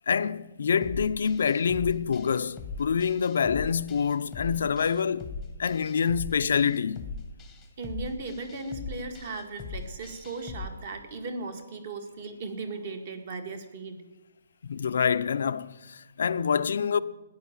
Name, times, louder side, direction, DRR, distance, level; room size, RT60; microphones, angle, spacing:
voice 1, 0.1-5.3 5.6-7.1 14.7-17.0, left 6 dB, 55° left, 0.6 m, -26 dB
sound 1, 0.8-10.7, left 4 dB, 5° left, 1.2 m, -40 dB
voice 2, 7.8-14.0, right 3 dB, 30° right, 1.9 m, -37 dB
14.5 x 10.5 x 8.8 m
hypercardioid pair, 180°, 0 cm